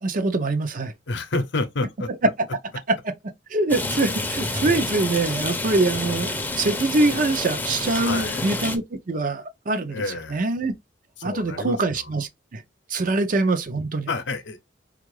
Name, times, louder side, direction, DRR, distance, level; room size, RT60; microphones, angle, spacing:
voice 1, 0.0-0.9 3.0-3.1 3.5-10.0 10.3-10.7 11.2-12.6 12.9-14.1, right 2 dB, 50° right, 0.6 m, -24 dB
voice 2, 1.1-2.1 8.0-8.4 9.9-10.4 11.2-12.1 13.0-13.2 14.1-14.6, left 2 dB, 75° left, 0.7 m, -29 dB
Rain, 3.7-8.8, left 2 dB, 10° left, 0.6 m, -28 dB
4.5 x 2.4 x 3.1 m
head